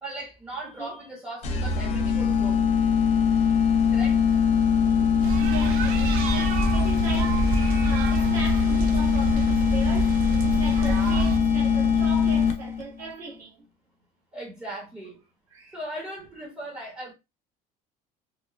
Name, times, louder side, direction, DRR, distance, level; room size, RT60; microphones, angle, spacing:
voice 1, 0.0-2.6 3.9-4.2 10.8-11.3 14.3-15.2 15.7-17.1, right 1 dB, 10° right, 0.8 m, -38 dB
sound 1, 1.4-12.8, left 6 dB, 45° left, 0.5 m, -22 dB
voice 2, 4.6-13.6 15.5-15.8, right 4 dB, 55° right, 1.0 m, -38 dB
sound 2, 5.2-11.4, right 3 dB, 85° right, 0.5 m, -28 dB
3.0 x 2.0 x 2.4 m
cardioid pair, 165°, 15 cm